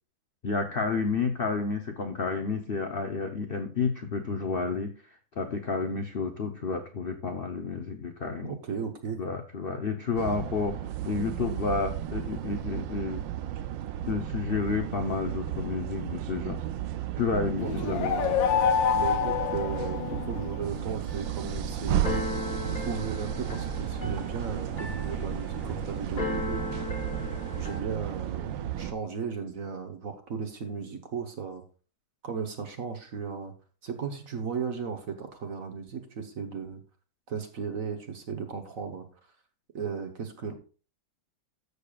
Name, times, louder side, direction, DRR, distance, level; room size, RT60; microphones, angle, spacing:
voice 1, 0.4-4.9 5.4-8.6 9.2-10.8 11.0-13.2 14.1-16.6 17.2-18.1, left 4 dB, 50° left, 5 dB, 0.6 m, -30 dB
voice 2, 8.4-9.2 17.6-18.4 19.0-22.2 22.6-26.6 27.5-31.6 32.2-33.5 33.8-36.8 37.3-39.0 39.7-40.5, right 6 dB, 50° right, 6 dB, 1.4 m, -35 dB
sound 1, 10.2-28.9, right 11 dB, 80° right, 1.3 m, -34 dB
sound 2, 17.6-20.5, left 7 dB, 85° left, 1.4 m, -27 dB
Keyboard (musical), 21.1-27.8, left 2 dB, 30° left, 1.5 m, -36 dB
13.5 x 6.6 x 2.4 m, 0.37 s
omnidirectional pair, 2.0 m